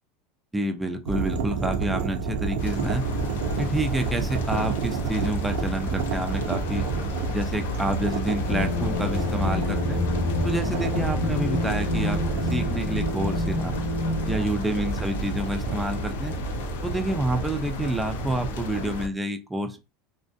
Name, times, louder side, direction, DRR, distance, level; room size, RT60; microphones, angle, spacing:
voice 1, 0.5-3.0 3.6-6.8 7.3-10.0 10.4-13.8 14.3-16.3 16.8-19.8, right 1 dB, 5° right, 6 dB, 0.3 m, -28 dB
sound 1, 1.1-19.1, right 4 dB, 85° right, 0.5 m, -30 dB
sound 2, 2.6-19.1, left 2 dB, 90° left, 0.4 m, -34 dB
sound 3, 8.5-14.3, left 3 dB, 50° left, 0.7 m, -29 dB
2.4 x 2.1 x 2.5 m, 0.27 s
supercardioid pair, 130°, 0 cm